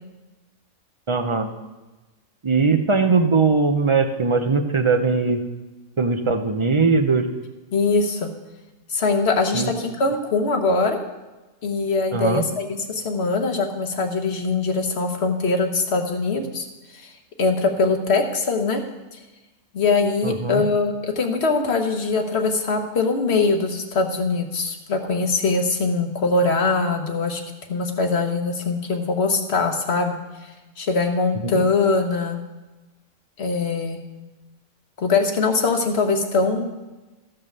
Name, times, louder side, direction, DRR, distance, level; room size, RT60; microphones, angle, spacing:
voice 1, 1.1-1.5 2.4-5.4 6.0-7.3 9.5-9.7 12.1-12.4 20.2-20.6 31.4-31.5, right 4 dB, 45° right, 7 dB, 0.4 m, -20 dB
voice 2, 7.7-8.3 8.9-11.0 11.6-16.7 16.9-17.1 17.4-18.8 19.7-27.4 27.7-30.2 30.8-32.4 33.4-34.0 35.0-36.7, left 3 dB, 50° left, 5 dB, 1.3 m, -22 dB
14.0 x 5.7 x 6.6 m, 1.1 s
omnidirectional pair, 1.5 m